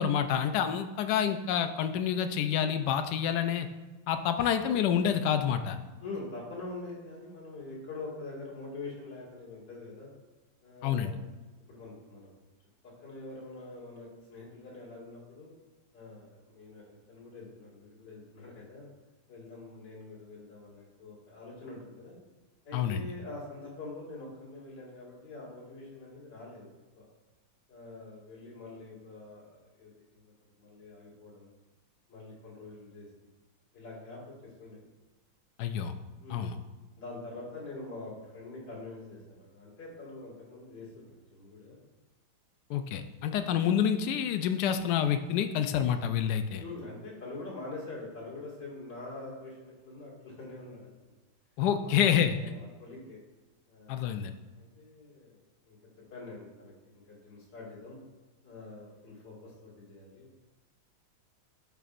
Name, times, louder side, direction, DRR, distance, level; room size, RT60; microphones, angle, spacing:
voice 1, 0.0-3.7 4.1-5.8 10.8-11.1 22.7-23.0 35.6-35.9 36.3-36.6 42.7-46.6 51.6-52.4 53.9-54.3, left 8 dB, 75° left, 8 dB, 0.9 m, -28 dB
voice 2, 6.0-10.1 10.6-11.2 11.7-12.3 12.8-15.5 15.9-18.9 19.3-22.2 22.6-26.7 27.0-27.1 27.7-31.5 32.1-33.3 33.7-34.8 36.2-36.5 37.0-41.8 46.6-51.1 51.8-52.0 52.3-53.2 53.7-54.1 54.6-55.8 56.1-58.0 58.4-60.3, left 2 dB, 60° left, -6 dB, 2.8 m, -45 dB
12.0 x 4.6 x 2.5 m, 1.2 s
omnidirectional pair, 2.2 m